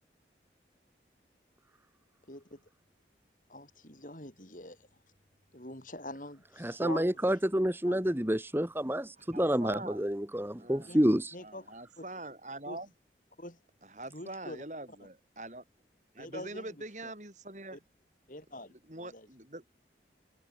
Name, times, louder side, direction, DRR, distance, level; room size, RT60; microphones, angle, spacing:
voice 1, 2.3-2.7 3.5-4.9 5.5-7.4 7.9-8.0 10.9-11.0 11.3-11.7 12.0-12.1 12.7-12.8 13.4-13.6 14.1-14.6 16.2-16.7 17.0-17.1 17.7-17.8 18.3-19.3, left 1 dB, 50° left, 6.3 m, -45 dB
voice 2, 6.6-11.3, equal, 15° right, 1.3 m, -29 dB
voice 3, 9.2-10.0 10.6-11.1 11.4-12.9 13.8-15.6 16.1-17.8 18.7-19.6, right 2 dB, 40° right, 5.6 m, -44 dB
open air
head